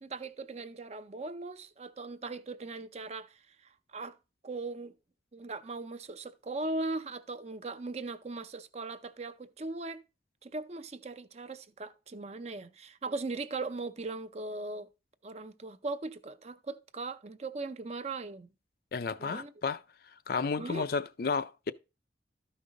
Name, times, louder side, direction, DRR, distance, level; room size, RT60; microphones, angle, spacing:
voice 1, 0.0-4.2 4.4-4.9 5.3-10.0 10.4-14.9 15.2-18.5 19.2-19.5 20.6-20.9, right 3 dB, 35° right, 0.5 m, -39 dB
voice 2, 18.9-19.8 20.3-21.7, left 5 dB, 55° left, 0.4 m, -32 dB
13.0 x 5.3 x 3.8 m
head